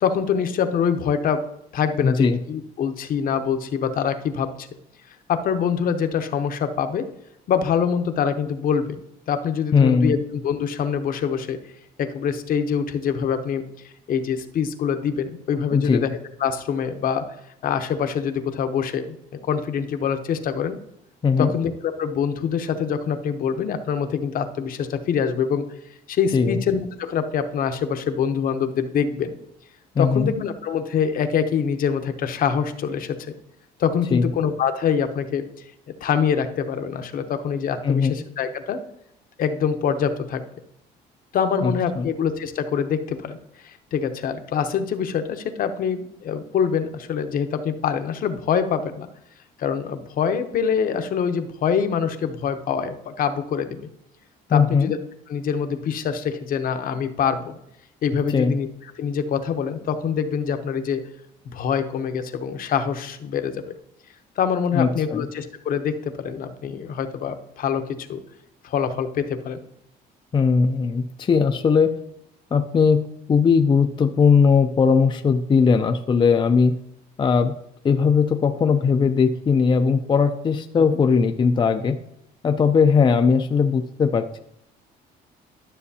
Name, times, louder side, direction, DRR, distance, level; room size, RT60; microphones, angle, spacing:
voice 1, 0.0-1.5 1.7-4.7 5.3-7.0 7.5-9.0 9.3-11.6 12.0-13.6 14.1-17.2 17.6-19.2 19.4-20.8 21.4-25.7 26.1-29.3 30.0-33.2 33.8-35.4 35.9-38.8 39.4-40.5 41.3-43.4 43.6-49.1 49.6-53.8 54.5-55.0 55.3-57.6 58.0-58.7 59.0-61.0 61.5-63.6 64.4-68.2 68.6-69.6 80.8-80.9, left 7 dB, 55° left, 8 dB, 0.9 m, -25 dB
voice 2, 2.0-2.4 9.7-10.2 15.7-16.0 21.2-21.5 26.3-26.6 30.0-30.3 34.1-34.3 37.8-38.2 41.6-42.1 54.5-54.9 58.3-58.6 64.7-65.3 70.3-71.9 72.5-76.8 77.2-77.5 77.8-82.0 82.4-84.4, left 5 dB, 30° left, 6 dB, 0.5 m, -19 dB
12.0 x 7.0 x 2.8 m, 0.77 s
cardioid pair, 110°, 17 cm